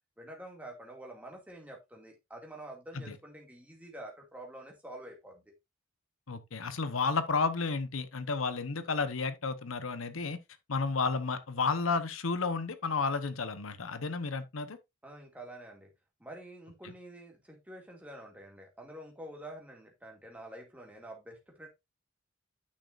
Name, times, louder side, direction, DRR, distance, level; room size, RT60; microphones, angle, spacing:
voice 1, 0.2-5.5 15.0-15.9 16.2-21.7, right 1 dB, 5° right, 2.2 m, -47 dB
voice 2, 6.3-10.4 10.7-14.8 16.8-16.9, left 4 dB, 90° left, 0.9 m, -32 dB
9.8 x 6.4 x 2.5 m
head